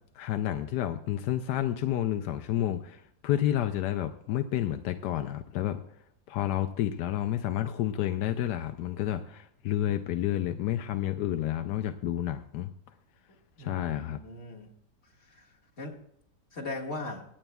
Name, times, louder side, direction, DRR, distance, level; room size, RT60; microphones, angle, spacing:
voice 1, 0.1-5.8 6.3-12.7 13.6-14.2, left 12 dB, 85° left, 8 dB, 1.2 m, -30 dB
voice 2, 13.6-14.7 15.8-16.0 16.5-17.2, left 2 dB, 40° left, -2 dB, 2.1 m, -38 dB
25.0 x 9.0 x 2.3 m, 0.75 s
omnidirectional pair, 1.8 m